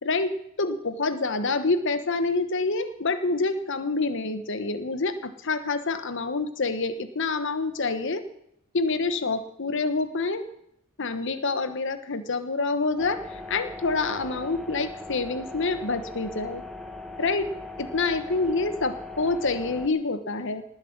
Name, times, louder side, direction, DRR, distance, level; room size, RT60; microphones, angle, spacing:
voice 1, 0.0-8.2 8.7-10.4 11.0-16.6 17.2-17.5 17.8-20.6, left 3 dB, 60° left, 11 dB, 1.2 m, -27 dB
sound 1, 13.0-19.9, left 2 dB, ahead, 1.4 m, -39 dB
19.0 x 7.9 x 7.3 m, 0.76 s
head